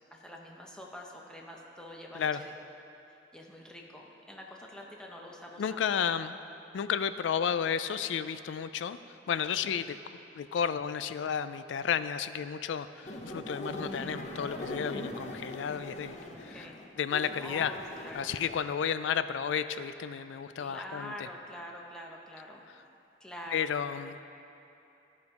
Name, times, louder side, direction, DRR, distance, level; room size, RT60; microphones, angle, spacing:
voice 1, 0.0-2.5 3.3-6.0 16.1-16.8 17.4-18.4 20.6-22.6 23.2-23.7, left 1 dB, 5° left, -1 dB, 0.8 m, -46 dB
voice 2, 5.6-6.4 6.7-9.0 9.3-10.0 10.3-16.1 16.4-16.7 17.0-17.7 18.1-21.1 23.5-24.2, left 7 dB, 85° left, 12 dB, 0.3 m, -32 dB
sound 1, 13.0-18.5, left 1 dB, 40° left, 0.7 m, -41 dB
12.5 x 5.2 x 4.7 m, 2.8 s
head